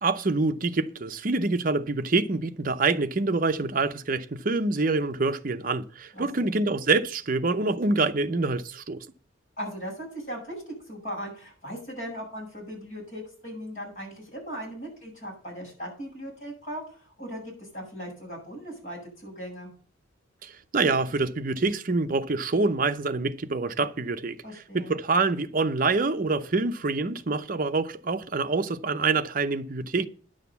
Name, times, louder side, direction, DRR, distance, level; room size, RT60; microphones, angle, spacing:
voice 1, 0.0-9.1 20.4-24.4 24.7-30.1, right 3 dB, 45° right, 0.6 m, -26 dB
voice 2, 6.1-6.5 9.6-19.7 24.4-24.9, equal, 40° left, 7.2 m, -38 dB
10.5 x 6.5 x 6.9 m
head